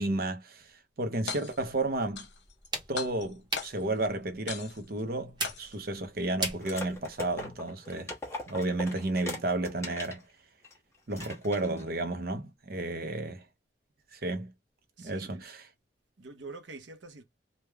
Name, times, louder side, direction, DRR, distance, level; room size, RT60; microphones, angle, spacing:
voice 1, 0.0-2.3 2.9-8.1 8.5-10.2 11.1-13.4 14.1-14.5 15.0-15.7, right 2 dB, 55° right, 0.7 m, -32 dB
sound 1, 1.1-1.7 2.2-2.7 3.0-4.0 4.5-5.0 5.4-6.0, left 6 dB, 80° left, 1.0 m, -39 dB
sound 2, 1.5-7.4, right 2 dB, 25° right, 1.0 m, -40 dB
sound 3, 6.6-10.2 10.6-10.8 11.1-11.9, left 2 dB, 15° left, 1.2 m, -40 dB
voice 2, 15.0-15.5 16.2-17.2, right 3 dB, 90° right, 0.8 m, -46 dB
3.3 x 2.2 x 3.3 m
head